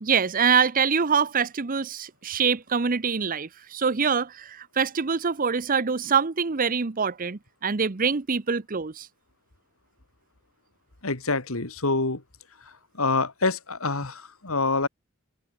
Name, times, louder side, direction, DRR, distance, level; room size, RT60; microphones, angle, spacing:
voice 1, 0.0-9.1, right 6 dB, 40° right, 0.8 m, -25 dB
voice 2, 11.0-12.2 13.0-14.9, left 3 dB, 75° left, 2.5 m, -26 dB
head